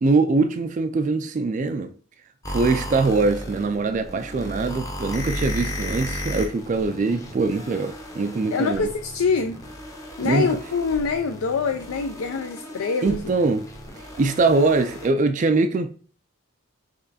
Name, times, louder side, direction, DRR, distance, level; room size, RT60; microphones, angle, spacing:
voice 1, 0.0-1.9 2.5-8.9 10.2-10.5 13.0-13.7 14.2-15.9, right 3 dB, 35° right, 0.3 m, -22 dB
sound 1, 2.4-15.1, equal, 15° left, 0.7 m, -35 dB
voice 2, 8.5-9.6 10.2-13.2, left 5 dB, 80° left, 0.4 m, -25 dB
6.0 x 3.1 x 2.7 m
head